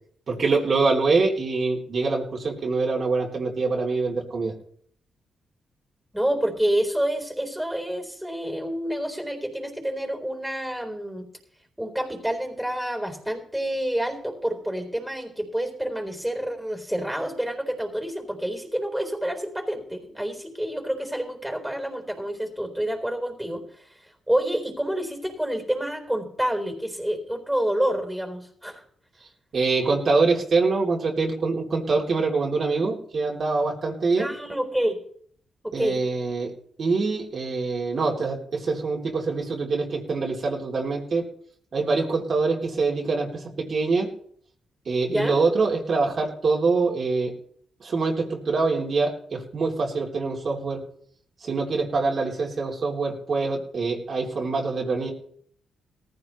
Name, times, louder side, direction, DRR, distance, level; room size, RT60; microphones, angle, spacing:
voice 1, 0.3-4.5 29.5-34.3 35.7-36.5 36.8-41.2 41.7-44.1 44.8-47.3 47.8-50.8 51.4-55.1, right 4 dB, 55° right, -2 dB, 3.3 m, -24 dB
voice 2, 6.1-11.3 11.8-23.6 24.3-28.8 34.2-35.0 35.6-36.0 45.1-45.4, right 1 dB, 5° right, 3 dB, 4.1 m, -28 dB
18.0 x 15.0 x 3.2 m, 0.62 s
cardioid pair, 65°, 0 cm